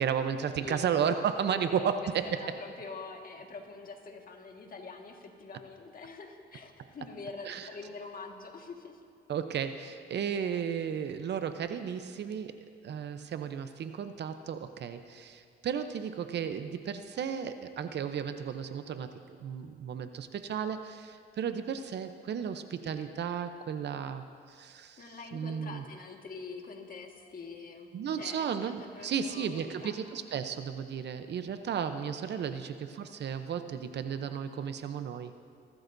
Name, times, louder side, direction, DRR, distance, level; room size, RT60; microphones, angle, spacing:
voice 1, 0.0-2.4 7.4-7.7 9.3-12.6 12.8-19.1 19.4-25.0 25.3-25.8 27.9-35.3, right 7 dB, 60° right, 9 dB, 0.8 m, -34 dB
voice 2, 1.5-1.9 2.2-9.0 25.0-27.9 28.2-30.0 32.0-32.6, left 4 dB, 45° left, 2 dB, 1.7 m, -45 dB
25.5 x 12.5 x 2.7 m, 2.4 s
cardioid pair, 90°, 20 cm